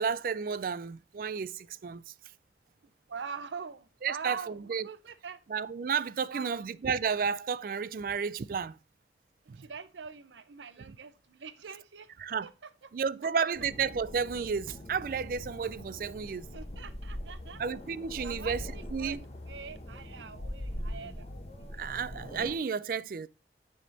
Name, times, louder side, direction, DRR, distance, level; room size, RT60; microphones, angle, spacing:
voice 1, 0.0-2.0 4.0-4.9 5.5-8.8 9.5-9.7 12.2-12.5 12.9-16.5 17.6-18.6 18.9-19.2 21.7-23.3, right 6 dB, 50° right, 0.3 m, -32 dB
voice 2, 3.1-5.4 6.3-6.6 9.4-12.1 12.4-12.9 13.2-13.3 16.2-17.6 18.2-21.3 21.7-21.9, right 5 dB, 90° right, 0.6 m, -44 dB
sound 1, 13.5-22.6, left 1 dB, 35° left, 1.1 m, -42 dB
10.0 x 3.6 x 4.0 m
head